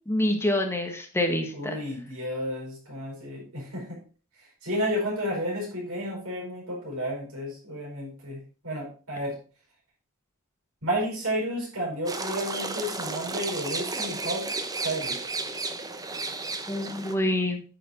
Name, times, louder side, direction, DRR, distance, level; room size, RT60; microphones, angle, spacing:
voice 1, 0.1-1.8 16.7-17.6, left 1 dB, 10° left, 4 dB, 1.3 m, -26 dB
voice 2, 1.5-4.0 4.4-9.4 10.8-14.5 14.7-15.2, equal, 80° right, -2 dB, 4.6 m, -32 dB
sound 1, 12.1-17.1, right 3 dB, 15° right, 0.7 m, -33 dB
9.1 x 5.2 x 4.3 m, 0.39 s
head